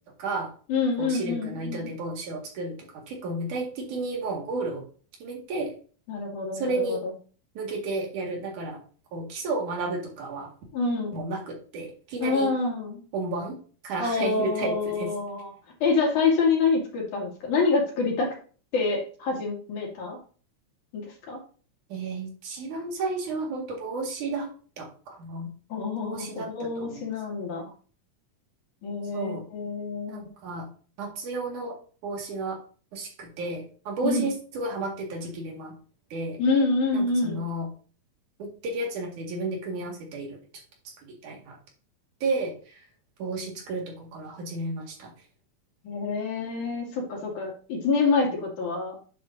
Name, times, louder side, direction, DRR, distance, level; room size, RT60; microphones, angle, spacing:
voice 1, 0.2-0.5 1.0-4.8 5.2-5.7 6.5-7.0 7.5-8.8 9.1-10.5 11.1-12.5 13.1-13.6 13.8-15.1 21.9-24.5 24.8-25.5 26.0-27.0 29.1-29.4 30.1-30.7 31.0-31.8 32.0-32.6 32.9-35.7 36.1-36.4 36.9-37.7 38.4-40.4 40.8-41.6 42.2-42.8 43.2-45.1, right 3 dB, 75° right, 0 dB, 3.5 m, -32 dB
voice 2, 0.7-1.9 6.1-7.1 10.7-11.2 12.2-13.0 14.0-15.5 15.8-18.4 18.7-20.2 20.9-21.4 25.7-27.7 28.8-30.3 34.0-34.3 36.4-37.4 45.8-49.0, left 4 dB, 75° left, -1 dB, 3.9 m, -26 dB
10.0 x 7.6 x 2.7 m, 0.40 s
omnidirectional pair, 3.6 m